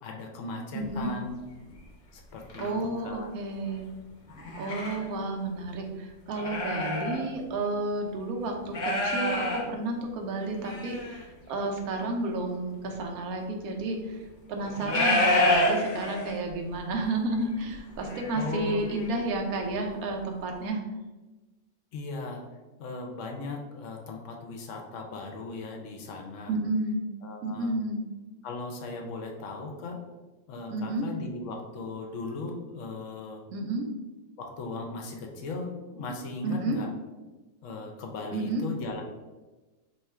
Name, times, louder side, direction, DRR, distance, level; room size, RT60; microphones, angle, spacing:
voice 1, 0.0-1.4 2.1-3.3 18.3-18.8 21.9-22.4 22.8-26.5 27.2-27.7 28.4-30.0 30.5-33.4 34.4-36.9 37.6-39.0, left 3 dB, 70° left, 1 dB, 0.9 m, -37 dB
voice 2, 0.7-1.1 2.6-3.9 4.6-14.2 14.5-20.8 26.5-27.0 27.4-28.0 30.7-31.1 33.5-33.9 36.4-36.8 38.3-38.6, right 2 dB, 90° right, 2 dB, 1.1 m, -31 dB
sound 1, 0.9-1.0 1.7-1.8 2.3-2.7 4.3-5.0 5.6-5.7 6.3-7.2 7.5-7.6 8.6-9.6 10.4-11.2 12.9-13.0 14.6-16.5 16.9-17.0 17.3-19.3 19.7-19.8, left 1 dB, 40° left, 0.8 m, -28 dB
2.9 x 2.3 x 4.2 m, 1.2 s
omnidirectional pair, 1.5 m